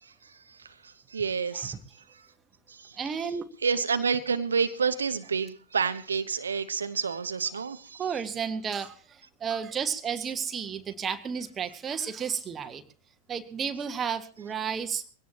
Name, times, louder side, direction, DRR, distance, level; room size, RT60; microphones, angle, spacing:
voice 1, 0.0-1.8 2.1-2.3 2.7-3.0 3.6-8.0, right 5 dB, 70° right, 10 dB, 0.8 m, -29 dB
voice 2, 3.0-3.4 8.0-8.9 9.4-12.8 13.3-15.0, right 7 dB, 20° right, 8 dB, 1.4 m, -32 dB
22.0 x 17.0 x 2.9 m, 0.39 s
figure-of-eight pair, 90°, 0 cm